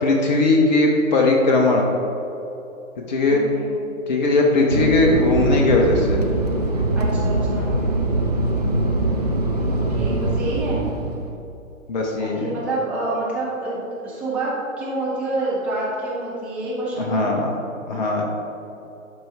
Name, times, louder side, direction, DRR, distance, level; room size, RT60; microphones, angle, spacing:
voice 1, 0.0-1.8 3.1-3.4 4.1-6.2 8.6-9.0 11.9-12.5 17.0-17.5 17.9-18.2, left 2 dB, 35° left, 0 dB, 0.7 m, -19 dB
voice 2, 3.2-3.8 6.9-7.8 9.7-10.8 12.2-17.4, right 2 dB, 5° right, -8 dB, 0.8 m, -28 dB
Fixed-wing aircraft airplane, 4.7-11.4, right 2 dB, 30° right, 0.4 m, -22 dB
12.0 x 4.4 x 3.3 m, 3.0 s
figure-of-eight pair, 125°, 42 cm